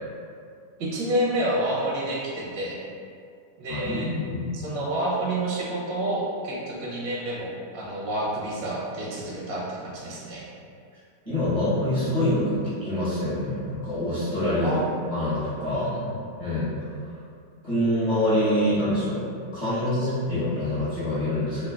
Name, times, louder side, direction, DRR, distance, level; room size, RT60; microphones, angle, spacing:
voice 1, 0.8-2.8 3.6-4.1 4.5-10.5 14.6-14.8 15.7-16.2 19.9-20.1, right 1 dB, 90° right, -6 dB, 1.4 m, -29 dB
voice 2, 3.7-4.5 11.2-14.7 15.1-15.9 16.4-16.7 17.6-19.2 19.5-21.7, left 1 dB, 25° left, -14 dB, 0.8 m, -25 dB
3.6 x 2.2 x 2.3 m, 2.4 s
omnidirectional pair, 1.8 m